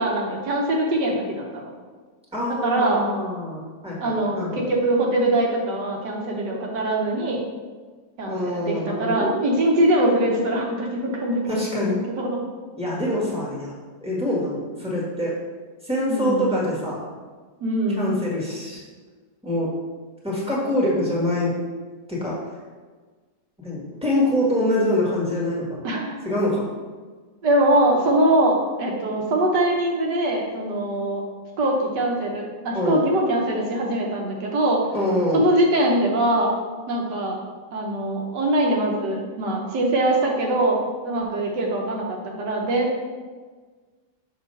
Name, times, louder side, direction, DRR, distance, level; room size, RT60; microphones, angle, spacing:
voice 1, 0.0-1.6 2.6-3.0 4.0-7.4 8.2-12.4 16.1-16.5 17.6-18.1 25.8-26.2 27.4-31.2 31.6-34.9 35.3-36.5 36.9-37.4 37.7-40.8 41.0-43.0, right 1 dB, 85° right, -1 dB, 1.7 m, -22 dB
voice 2, 2.3-4.7 8.2-9.3 11.5-12.0 12.8-13.7 14.0-15.3 15.8-17.0 18.0-18.8 19.4-19.7 20.2-21.5 22.1-22.3 23.6-25.8 26.2-26.7 32.7-33.0 34.9-35.4, left 1 dB, 5° right, -5 dB, 1.4 m, -25 dB
6.3 x 3.0 x 5.4 m, 1.4 s
omnidirectional pair, 1.8 m